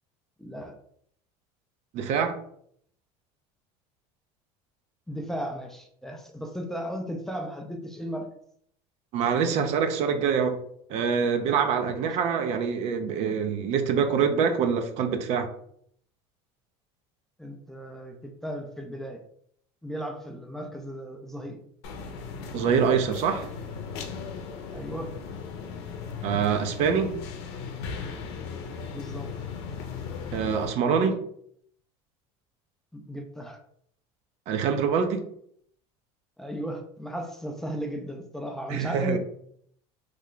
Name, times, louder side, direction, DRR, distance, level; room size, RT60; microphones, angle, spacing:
voice 1, 0.4-0.7 5.1-8.3 11.9-12.1 17.4-18.2 18.4-19.2 19.8-21.6 24.7-25.1 28.9-29.3 32.9-33.6 36.4-39.2, equal, 5° left, 3 dB, 0.4 m, -35 dB
voice 2, 1.9-2.4 9.1-10.6 10.9-15.5 22.5-23.5 26.2-27.1 30.3-31.2 34.5-35.2 38.7-39.2, right 6 dB, 55° right, 7 dB, 0.5 m, -25 dB
sound 1, 21.8-30.7, left 5 dB, 85° left, 0.7 m, -37 dB
3.2 x 2.2 x 3.8 m, 0.65 s
supercardioid pair, 125°, 14 cm